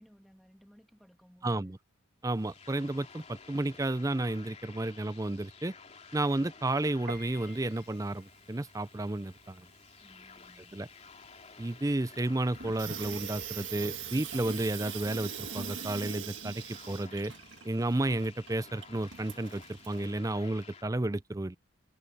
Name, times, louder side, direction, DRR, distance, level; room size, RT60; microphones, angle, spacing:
voice 1, 0.0-1.8 10.0-10.8, equal, ahead, 2.7 m, -59 dB
voice 2, 1.4-1.8 2.2-5.7 6.1-9.7 10.7-10.9 11.6-17.3 17.6-21.6, right 2 dB, 15° right, 0.5 m, -32 dB
sound 1, 2.2-20.9, left 5 dB, 35° left, 3.1 m, -53 dB
Piano, 7.1-12.9, right 2 dB, 50° right, 2.0 m, -54 dB
Water tap faucet / Sink (filling or washing), 12.5-20.1, right 7 dB, 70° right, 1.7 m, -42 dB
head